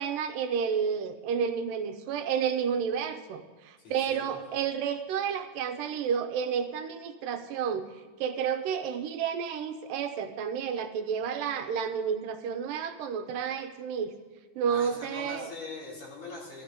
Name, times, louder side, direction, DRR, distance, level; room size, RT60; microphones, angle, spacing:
voice 1, 0.0-7.9 8.2-14.1 14.6-15.5, right 7 dB, 85° right, 8 dB, 2.5 m, -31 dB
voice 2, 3.8-4.3 14.6-16.6, left 3 dB, 55° left, -4 dB, 4.6 m, -42 dB
15.0 x 13.5 x 5.1 m, 1.4 s
omnidirectional pair, 3.9 m